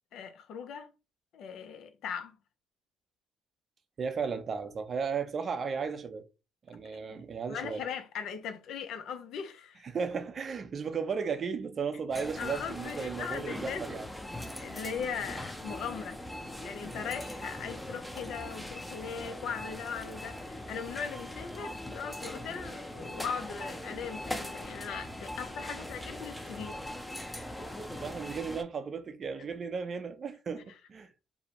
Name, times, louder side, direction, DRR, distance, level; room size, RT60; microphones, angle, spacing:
voice 1, 0.1-0.9 1.3-2.3 6.9-7.2 7.5-9.9 12.4-13.8 14.5-16.2 16.6-26.8, left 7 dB, 70° left, 0.4 m, -39 dB
voice 2, 4.0-6.3 6.7-7.8 9.8-14.1 25.7-25.8 28.0-31.1, right 5 dB, 50° right, 0.5 m, -35 dB
sound 1, 12.1-28.6, left 1 dB, 5° left, 0.6 m, -41 dB
2.6 x 2.0 x 2.9 m
hypercardioid pair, 60°, 0 cm